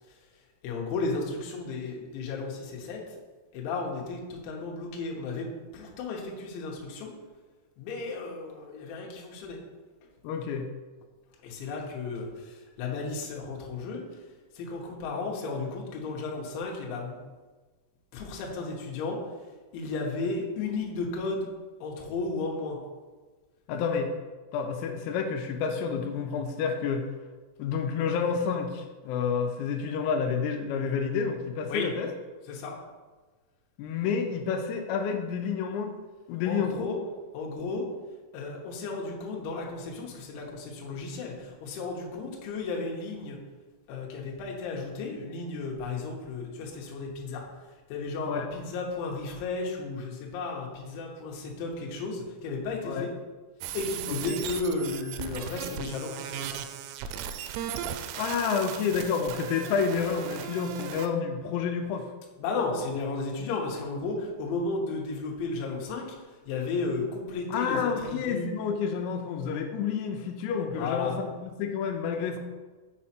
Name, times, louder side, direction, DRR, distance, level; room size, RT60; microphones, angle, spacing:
voice 1, 0.6-3.0 3.5-7.1 7.8-9.6 11.4-14.0 14.6-17.2 18.1-19.2 19.7-21.5 21.8-22.8 31.7-31.9 32.5-32.8 36.4-37.0 37.3-37.8 38.3-43.4 43.9-47.4 47.9-53.1 53.7-56.5 62.4-66.0 66.5-68.5 70.7-71.1, left 3 dB, 70° left, -1 dB, 3.3 m, -34 dB
voice 2, 10.2-10.7 23.7-24.1 24.5-27.1 27.6-32.1 33.8-35.9 36.3-36.9 48.3-48.5 52.8-53.1 54.1-54.4 58.2-62.1 67.5-72.4, left 6 dB, 90° left, 4 dB, 3.5 m, -29 dB
sound 1, 53.6-61.1, right 10 dB, 90° right, 3.3 m, -37 dB
7.2 x 6.1 x 4.3 m, 1.3 s
omnidirectional pair, 5.9 m